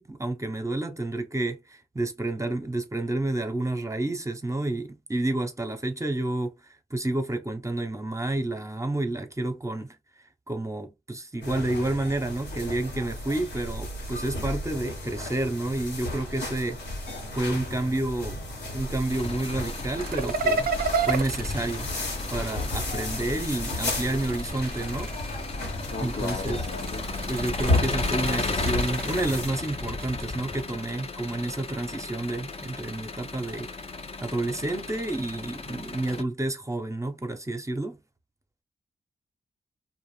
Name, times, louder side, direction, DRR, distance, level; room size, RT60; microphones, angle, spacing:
voice 1, 0.0-6.5 6.9-10.0 10.5-16.8 17.4-18.4 18.7-20.7 21.1-21.9 22.3-25.1 26.0-26.6 27.3-33.7 34.2-38.0, right 2 dB, 15° right, 0.7 m, -30 dB
sound 1, 11.4-29.5, left 1 dB, 90° left, 1.1 m, -34 dB
Engine, 19.1-36.2, left 3 dB, 35° left, 0.6 m, -35 dB
sound 2, 20.0-22.8 24.0-25.6 26.1-30.4, right 4 dB, 60° right, 0.4 m, -32 dB
voice 2, 25.9-27.1, left 5 dB, 75° left, 0.6 m, -36 dB
2.4 x 2.2 x 3.2 m
cardioid pair, 45°, 17 cm